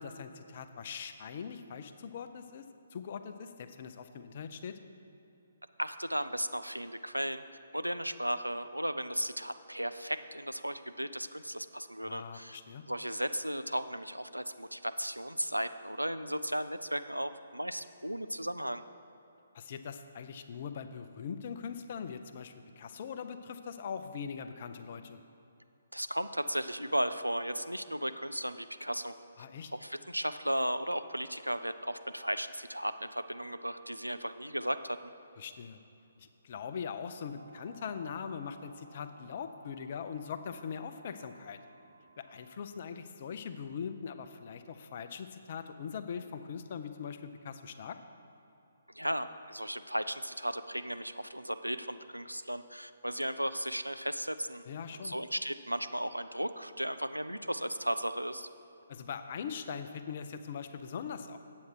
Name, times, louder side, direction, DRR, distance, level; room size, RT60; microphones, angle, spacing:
voice 1, 0.0-2.6 2.9-4.8 12.0-12.8 19.5-25.2 29.4-29.7 35.4-35.8 36.2-41.6 42.2-48.0 54.7-55.2 58.9-61.4, left 6 dB, 40° left, 9 dB, 0.5 m, -41 dB
voice 2, 5.8-7.4 7.7-12.6 12.9-18.8 25.9-29.1 29.7-35.1 48.9-54.6 54.9-58.5, equal, 90° right, 11 dB, 0.4 m, -35 dB
sound 1, 37.3-42.7, right 3 dB, 65° right, 0.8 m, -59 dB
8.3 x 7.8 x 4.6 m, 2.8 s
figure-of-eight pair, 135°, 0 cm